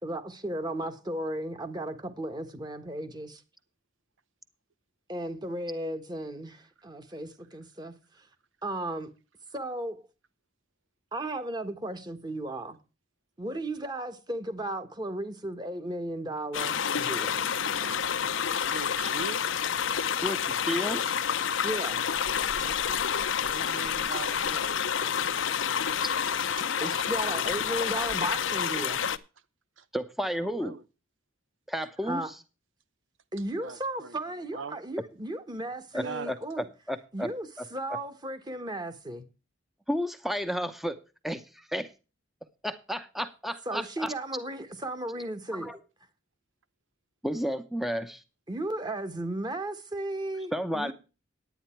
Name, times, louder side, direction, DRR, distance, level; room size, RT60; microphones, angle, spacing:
voice 1, 0.0-3.4 5.1-8.3 8.6-9.1 9.5-10.0 11.1-12.8 13.4-17.4 21.6-22.0 26.7-29.0 32.0-32.3 33.3-36.6 37.1-39.2 43.6-45.7 48.5-50.9, right 1 dB, 20° right, 1.4 m, -35 dB
sound 1, 16.5-29.2, left 8 dB, 85° left, 0.7 m, -29 dB
voice 2, 17.0-18.1 18.5-19.5 22.3-23.1 23.4-25.4 26.3-26.7 28.0-28.1 29.8-29.9 30.3-30.8 33.6-34.2 34.5-34.8 36.0-36.3, right 5 dB, 85° right, 0.8 m, -43 dB
voice 3, 20.2-21.2 29.9-30.7 31.7-32.2 35.9-36.3 36.9-37.3 37.6-37.7 39.9-41.0 41.2-41.9 42.6-44.1 45.5-45.8 47.2-48.2 50.5-50.9, equal, ahead, 0.8 m, -32 dB
11.0 x 9.4 x 4.5 m
head